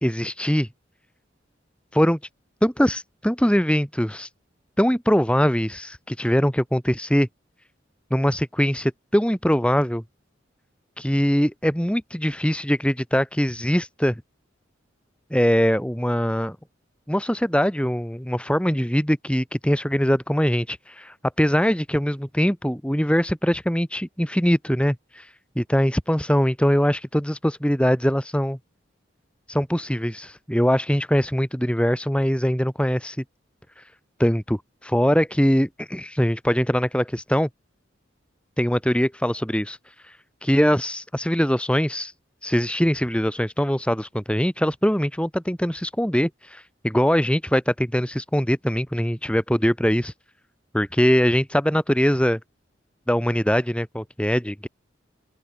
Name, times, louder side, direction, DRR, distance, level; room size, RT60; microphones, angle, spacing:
voice 1, 0.0-0.7 1.9-2.2 2.6-4.3 4.8-7.3 8.1-10.0 11.0-14.2 15.3-16.6 17.1-25.3 25.6-28.6 29.5-33.2 33.8-33.9 34.2-37.5 38.6-39.8 40.0-40.1 40.4-42.1 42.4-50.1 50.7-52.4 53.1-54.7, equal, 5° left, 3.0 m, -22 dB
open air
head